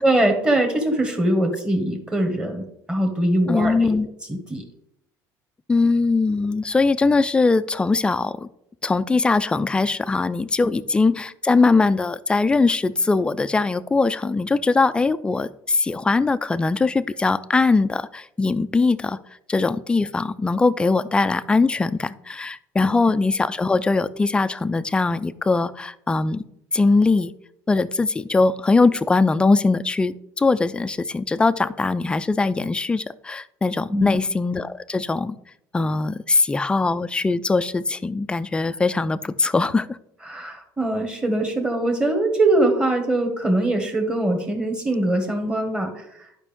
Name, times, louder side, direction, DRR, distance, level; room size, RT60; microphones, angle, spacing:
voice 1, 0.0-3.9 4.3-4.6 10.6-10.7 33.9-34.2 40.3-46.2, right 1 dB, 10° right, 3 dB, 1.6 m, -22 dB
voice 2, 3.5-4.1 5.7-8.5 8.8-19.2 19.5-26.4 26.7-27.3 27.7-35.4 35.7-40.0, left 3 dB, 10° left, 15 dB, 0.3 m, -21 dB
11.0 x 5.3 x 3.6 m, 0.76 s
cardioid pair, 130°, 8 cm